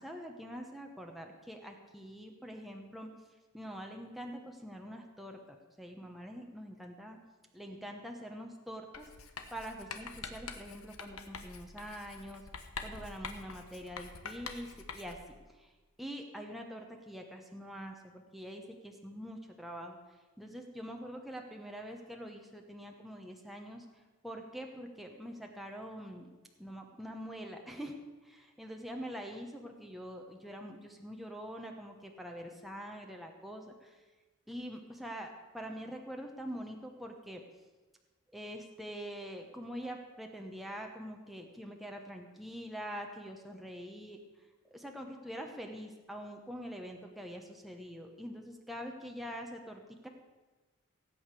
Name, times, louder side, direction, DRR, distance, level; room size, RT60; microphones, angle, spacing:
voice 1, 0.0-3.1 3.5-7.2 7.5-9.1 9.5-15.7 16.0-26.3 26.6-28.0 28.2-34.0 34.5-37.4 38.3-50.1, equal, ahead, 2 dB, 1.1 m, -45 dB
Writing, 8.9-15.3, left 5 dB, 80° left, 1.3 m, -46 dB
16.5 x 8.7 x 6.8 m, 1.2 s
head